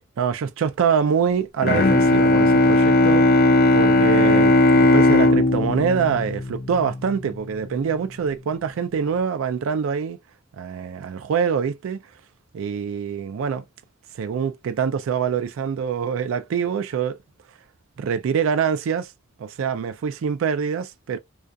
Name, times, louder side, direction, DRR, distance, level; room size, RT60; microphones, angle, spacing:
voice 1, 0.0-10.2 10.6-12.0 12.5-13.6 14.1-17.2 18.0-19.1 19.4-21.2, right 6 dB, 75° right, 0.3 m, -25 dB
Bowed string instrument, 1.6-7.2, left 2 dB, 45° left, 0.4 m, -17 dB
2.3 x 2.3 x 2.4 m
head